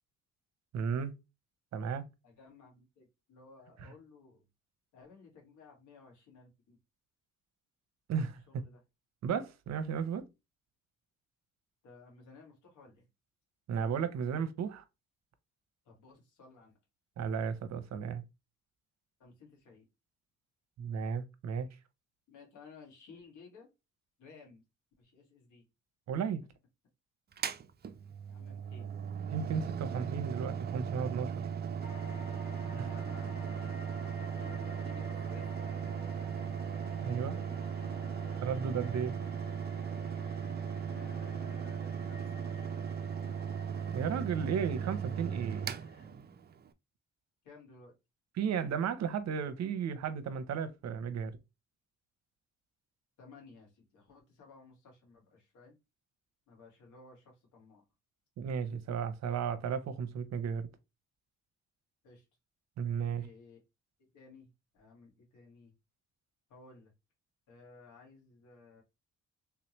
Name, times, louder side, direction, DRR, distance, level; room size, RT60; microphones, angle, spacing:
voice 1, 0.7-1.2 1.7-2.1 8.1-8.4 9.2-10.2 13.7-14.8 17.2-18.2 20.8-21.7 26.1-26.4 29.3-31.5 32.7-32.9 36.8-37.4 38.4-39.2 43.9-45.7 48.4-51.3 58.4-60.7 62.8-63.3, right 7 dB, 60° right, 0.7 m, -34 dB
voice 2, 2.2-4.4 4.9-6.8 8.5-8.8 11.8-13.1 15.9-16.8 19.2-19.9 22.3-23.7 24.2-24.6 25.0-25.7 28.3-28.9 32.7-35.5 37.2-38.4 40.8-42.8 47.4-47.9 53.2-55.8 56.5-57.8 62.0-62.3 63.1-63.6 64.0-65.7 66.5-66.9 67.5-68.8, left 4 dB, 75° left, 2.0 m, -56 dB
Mechanical fan, 27.3-46.7, right 7 dB, 35° right, 0.4 m, -37 dB
sound 1, 31.8-46.1, left 3 dB, 30° left, 2.4 m, -53 dB
3.4 x 3.1 x 3.0 m
cardioid pair, 90°, 30 cm